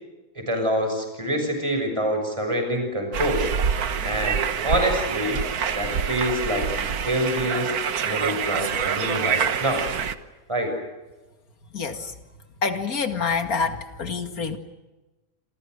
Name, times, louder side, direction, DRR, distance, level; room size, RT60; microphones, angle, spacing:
voice 1, 0.3-3.5 4.0-5.4 5.7-7.7 8.0-9.8 10.5-10.7, equal, 20° right, 4 dB, 6.6 m, -26 dB
sound 1, 3.1-10.1, right 7 dB, 80° right, 1.7 m, -26 dB
voice 2, 11.7-12.1 12.6-14.6, left 5 dB, 75° left, 8 dB, 2.6 m, -27 dB
28.0 x 27.5 x 6.5 m, 1.1 s
omnidirectional pair, 1.6 m